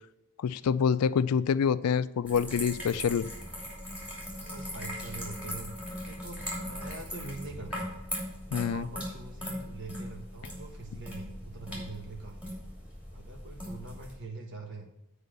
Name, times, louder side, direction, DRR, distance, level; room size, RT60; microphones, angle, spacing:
voice 1, 0.4-3.3 8.5-8.9, left 7 dB, 85° left, 17 dB, 0.4 m, -26 dB
sound 1, 2.2-14.1, equal, 5° right, 2.8 m, -39 dB
voice 2, 4.2-7.9 8.5-12.6 13.1-14.9, right 3 dB, 55° right, 2 dB, 1.4 m, -44 dB
8.3 x 4.8 x 6.5 m, 0.90 s
head